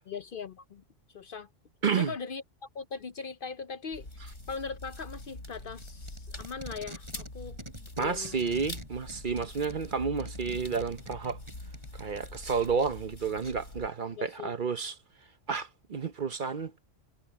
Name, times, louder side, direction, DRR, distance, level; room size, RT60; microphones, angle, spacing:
voice 1, 0.1-0.8 1.1-1.5 2.0-7.6 8.0-8.4 14.2-14.5, left 5 dB, 55° left, 0.7 m, -40 dB
sound 1, 3.9-13.9, left 2 dB, 80° left, 6.0 m, -44 dB
Packing tape duct tape, 5.6-7.3 7.6-12.7 13.4-13.5, right 1 dB, 25° right, 4.9 m, -46 dB
voice 2, 8.0-11.4 11.9-14.9 15.5-16.7, right 5 dB, 45° right, 0.9 m, -31 dB
omnidirectional pair, 1.3 m